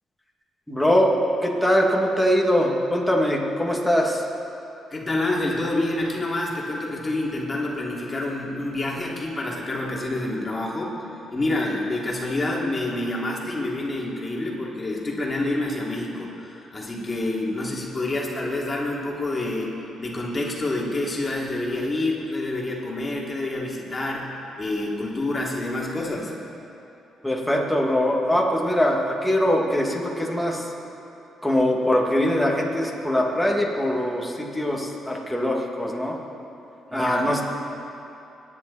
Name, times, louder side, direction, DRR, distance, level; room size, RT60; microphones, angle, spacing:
voice 1, 0.7-1.1 1.4-4.3 27.2-30.7 31.4-36.1 36.9-37.4, equal, 5° left, -2 dB, 2.5 m, -22 dB
voice 2, 4.9-11.0 11.3-19.7 20.0-24.3 24.6-26.3 36.9-37.3, left 2 dB, 30° left, -3 dB, 3.2 m, -27 dB
24.5 x 10.5 x 4.3 m, 2.9 s
cardioid pair, 90°, 0 cm